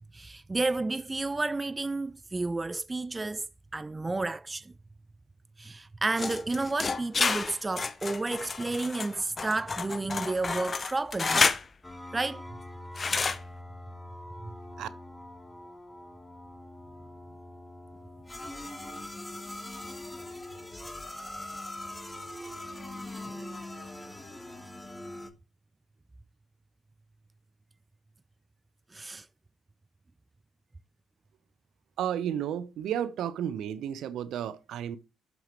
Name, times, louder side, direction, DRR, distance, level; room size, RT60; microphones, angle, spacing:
voice 1, 0.1-3.5 3.7-4.7 5.6-11.5 12.1-12.4 28.9-29.3, right 3 dB, 20° right, 0.3 m, -31 dB
sound 1, 6.2-11.6 13.0-13.4, left 4 dB, 35° left, 0.8 m, -29 dB
sound 2, 11.8-25.3, left 1 dB, 15° left, 1.8 m, -42 dB
voice 2, 32.0-35.0, right 9 dB, 65° right, 0.8 m, -32 dB
12.0 x 6.1 x 3.1 m
hypercardioid pair, 50°, 0 cm